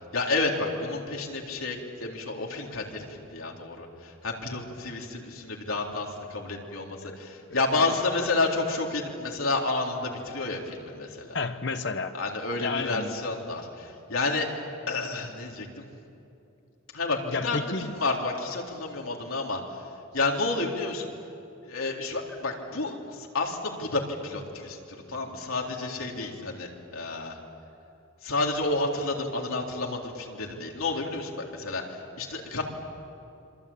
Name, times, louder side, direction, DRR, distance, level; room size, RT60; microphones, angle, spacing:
voice 1, 0.1-11.4 12.1-14.5 14.9-15.9 16.9-17.6 18.0-19.8 20.1-21.1 21.6-24.8 25.1-27.4 28.2-32.6, left 3 dB, 85° left, 0 dB, 3.7 m, -30 dB
voice 2, 11.3-12.1 12.6-13.1 17.3-18.0, left 3 dB, 55° left, 8 dB, 1.1 m, -31 dB
26.5 x 25.5 x 8.7 m, 2.7 s
head